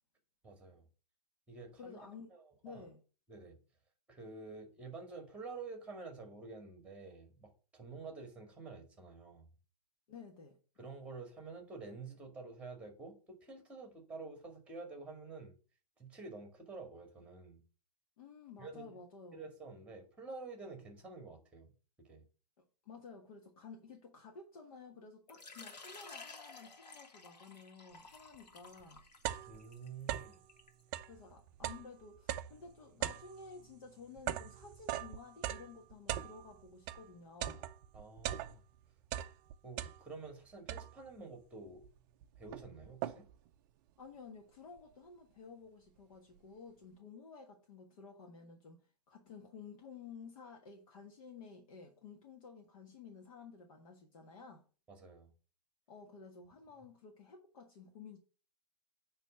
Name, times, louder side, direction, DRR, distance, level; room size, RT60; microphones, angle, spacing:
voice 1, 0.4-0.8 1.5-2.0 2.3-2.8 3.3-3.6 4.1-9.5 10.8-15.6 16.0-17.6 18.6-19.0 19.3-21.7 22.0-22.2 29.5-30.4 37.9-38.6 39.6-41.8 42.4-43.2 54.9-55.3, right 4 dB, 5° right, 2.0 m, -49 dB
voice 2, 1.8-2.3 2.6-3.0 10.1-10.6 18.2-19.4 22.6-29.0 31.1-37.7 44.0-48.8 49.1-54.6 55.9-58.2, left 5 dB, 55° left, 1.6 m, -53 dB
Water / Liquid, 25.3-30.8, left 3 dB, 85° left, 1.9 m, -54 dB
sound 1, 28.3-28.4 28.8-30.5 30.8-37.1 37.4-38.8 39.1-40.3 40.7-41.2 41.8-41.9 42.2-43.5, right 12 dB, 30° right, 0.5 m, -41 dB
9.0 x 3.3 x 6.5 m
hypercardioid pair, 140°, 21 cm